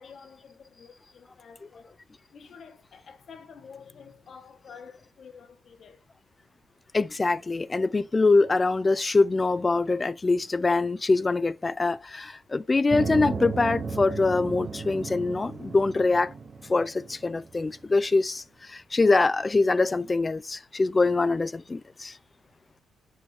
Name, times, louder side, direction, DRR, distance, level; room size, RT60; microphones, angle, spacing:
voice 1, 0.0-2.0 2.3-6.0 9.8-9.9, left 6 dB, 55° left, 1.5 m, -49 dB
voice 2, 6.9-16.3 16.7-22.2, left 3 dB, 25° left, 0.4 m, -24 dB
sound 1, 12.9-17.8, right 4 dB, 30° right, 0.8 m, -34 dB
7.2 x 6.4 x 2.7 m
cardioid pair, 90°, 0 cm